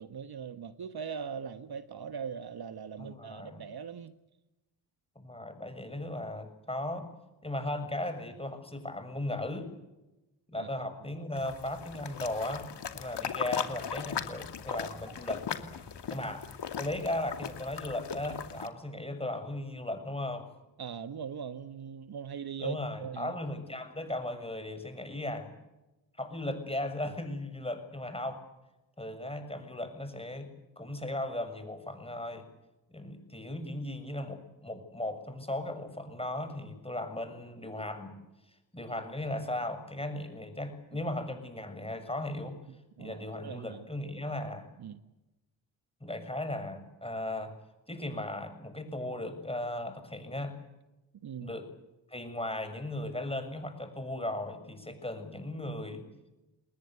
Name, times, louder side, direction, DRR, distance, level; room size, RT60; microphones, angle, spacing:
voice 1, 0.0-4.1 10.6-10.7 20.8-23.3 42.7-43.9 44.8-45.0 51.2-51.5, right 7 dB, 50° right, 11 dB, 1.4 m, -40 dB
voice 2, 3.0-3.6 5.2-7.1 7.4-9.7 10.5-15.5 16.1-16.5 16.8-20.5 22.6-25.5 26.2-28.4 29.0-30.5 30.8-32.5 32.9-38.2 38.7-42.6 43.0-44.7 46.0-47.5 47.9-50.6 51.4-51.7 52.1-56.1, left 1 dB, 10° left, 8 dB, 7.1 m, -37 dB
sound 1, 11.4-18.7, left 7 dB, 55° left, 2.6 m, -38 dB
29.0 x 20.5 x 8.2 m, 0.99 s
hypercardioid pair, 40°, 49 cm